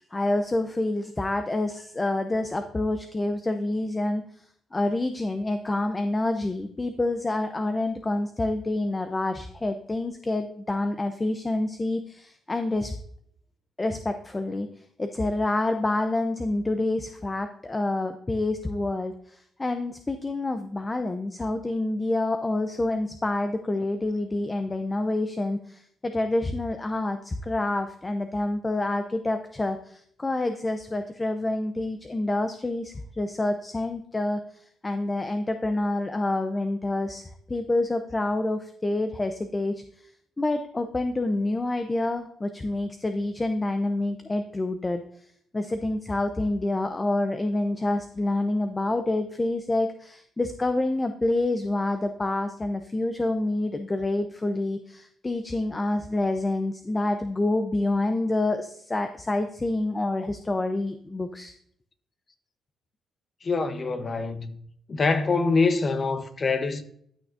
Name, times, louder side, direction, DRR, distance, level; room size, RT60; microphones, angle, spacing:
voice 1, 0.0-4.2 4.7-12.9 13.8-14.7 15.0-39.8 40.4-45.0 45.5-61.5, left 2 dB, 20° left, 0.7 m, -27 dB
voice 2, 63.4-64.5 64.9-66.8, left 4 dB, 35° left, 1.0 m, -25 dB
12.5 x 6.0 x 2.6 m
cardioid pair, 90°, 0 cm